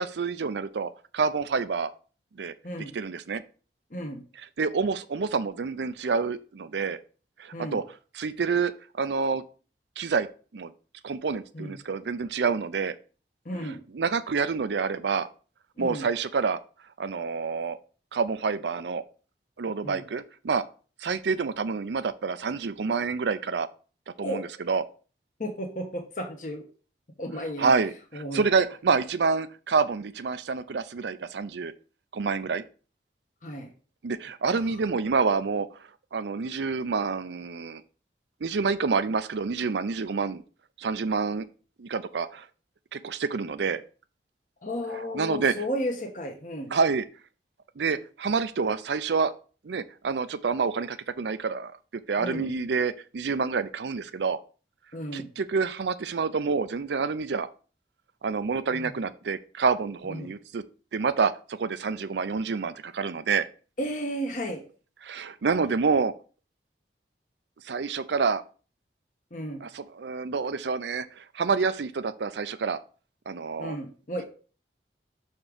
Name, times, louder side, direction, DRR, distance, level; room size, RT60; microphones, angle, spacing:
voice 1, 0.0-1.9 2.4-2.5 2.8-3.4 4.4-7.0 7.4-7.8 8.1-8.7 9.0-9.4 10.0-10.3 10.5-10.7 11.0-13.0 13.6-15.3 15.8-16.6 17.0-17.8 18.1-19.0 19.6-20.6 21.0-23.7 24.2-24.8 27.6-31.7 32.1-32.6 34.0-35.7 36.1-37.8 38.4-40.4 40.8-41.5 41.8-42.5 42.9-43.8 45.1-45.5 46.7-47.1 47.8-49.3 49.6-51.7 52.1-54.4 55.1-57.5 58.2-60.6 60.9-63.5 65.0-66.1 67.6-68.4 69.6-72.8 73.3-73.8, right 5 dB, 80° right, 12 dB, 0.5 m, -28 dB
voice 2, 3.9-4.2 7.5-7.8 11.5-11.7 13.4-13.8 15.8-16.1 19.8-20.0 24.2-24.4 25.4-26.6 27.2-27.7 28.1-28.4 33.4-33.7 44.6-46.7 52.2-52.5 54.9-55.3 58.7-58.9 60.1-60.3 63.8-64.6 69.3-69.6 73.6-74.2, equal, 45° left, 2 dB, 1.2 m, -33 dB
5.9 x 4.3 x 5.0 m, 0.37 s
head